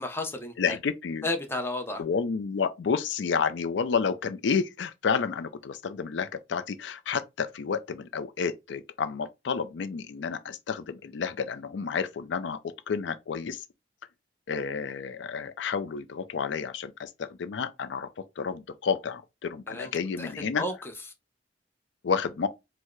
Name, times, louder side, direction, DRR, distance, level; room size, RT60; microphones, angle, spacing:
voice 1, 0.0-0.8 1.2-2.0 19.7-20.9, left 2 dB, 15° left, 0.7 m, -33 dB
voice 2, 0.6-1.3 2.0-12.6 12.9-13.6 14.5-18.1 18.4-20.6 22.0-22.5, left 6 dB, 75° left, 0.4 m, -30 dB
4.5 x 2.1 x 4.5 m
head